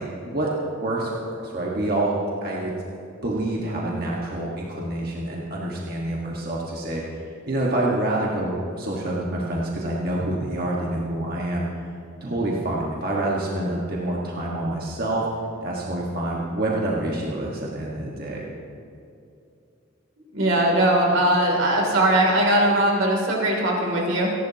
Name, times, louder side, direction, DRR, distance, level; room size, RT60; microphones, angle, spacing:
voice 1, 0.0-2.2 2.4-2.7 3.2-7.0 7.5-11.7 12.2-15.3 15.6-18.5, right 1 dB, 50° right, -4 dB, 1.5 m, -27 dB
voice 2, 20.3-24.3, right 1 dB, 85° right, -2 dB, 3.0 m, -20 dB
28.0 x 11.0 x 2.9 m, 2.5 s
head